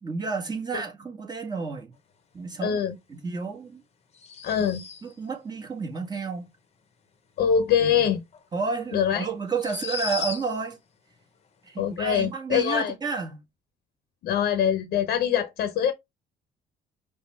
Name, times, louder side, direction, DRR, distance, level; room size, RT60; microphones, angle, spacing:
voice 1, 0.0-1.9 2.3-2.8 3.1-3.8 5.0-6.5 7.8-8.0 8.5-10.8 11.6-13.4, right 4 dB, 25° right, 1.7 m, -31 dB
voice 2, 2.6-2.9 4.4-4.8 7.4-8.2 8.9-9.3 11.8-12.9 14.2-15.9, left 8 dB, 65° left, 0.8 m, -23 dB
sound 1, 4.1-5.2 8.3-8.4 9.5-10.8, left 5 dB, 40° left, 0.9 m, -35 dB
5.2 x 2.4 x 3.3 m
cardioid pair, 110°, 17 cm